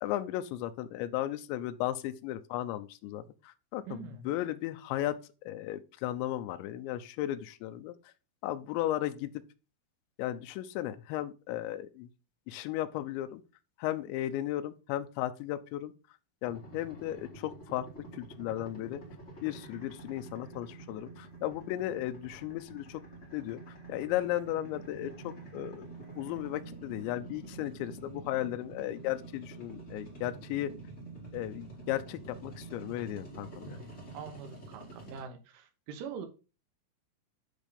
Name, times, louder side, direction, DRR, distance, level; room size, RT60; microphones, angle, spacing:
voice 1, 0.0-5.2 5.5-7.9 8.4-9.4 10.2-12.1 12.5-13.4 13.8-15.9 16.4-17.9 18.1-19.0 19.4-23.0 23.3-30.7 31.3-33.8, left 13 dB, 85° left, 2.6 m, -35 dB
voice 2, 3.9-4.3 33.7-36.3, right 6 dB, 75° right, 3.6 m, -44 dB
sound 1, 16.4-35.2, right 3 dB, 25° left, 1.6 m, -47 dB
10.0 x 3.6 x 5.2 m
omnidirectional pair, 5.9 m